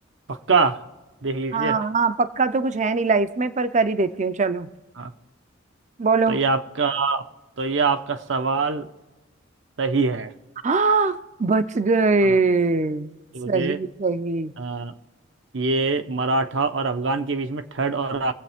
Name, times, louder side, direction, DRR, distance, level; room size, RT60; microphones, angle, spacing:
voice 1, 0.3-0.8 1.2-1.8 5.0-5.1 6.3-7.3 7.6-8.9 9.8-10.3 12.2-12.3 13.3-13.8 14.6-14.9 15.5-18.3, right 4 dB, 70° right, 0.9 m, -24 dB
voice 2, 1.5-4.7 6.0-6.4 10.6-13.1 13.5-14.5, right 4 dB, 40° right, 0.6 m, -22 dB
23.5 x 8.1 x 3.5 m
head